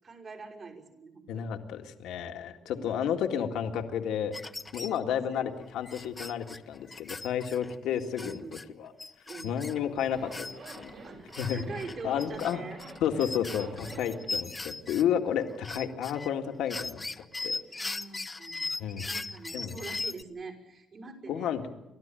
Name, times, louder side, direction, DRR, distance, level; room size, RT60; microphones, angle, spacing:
voice 1, 0.0-1.5 2.6-3.1 5.0-5.4 8.2-8.6 9.3-9.6 11.0-12.8 13.2-13.3 17.7-21.6, right 4 dB, 50° right, 1 dB, 5.9 m, -45 dB
voice 2, 1.3-4.3 4.7-8.4 8.8-8.9 9.4-10.9 11.4-11.6 12.0-12.6 13.0-17.6 18.8-19.1 19.5-19.8 21.3-21.6, left 9 dB, 90° left, 5 dB, 1.9 m, -31 dB
sound 1, 4.3-5.0 5.3-5.4 5.8-8.6 9.0-10.9 11.3-15.0 15.4-16.3 16.7-20.2, left 3 dB, 20° left, 0.9 m, -38 dB
Zipper (clothing), 10.0-14.3, right 3 dB, 70° right, 7.2 m, -46 dB
30.0 x 13.0 x 9.1 m, 0.93 s
cardioid pair, 90°, 0 cm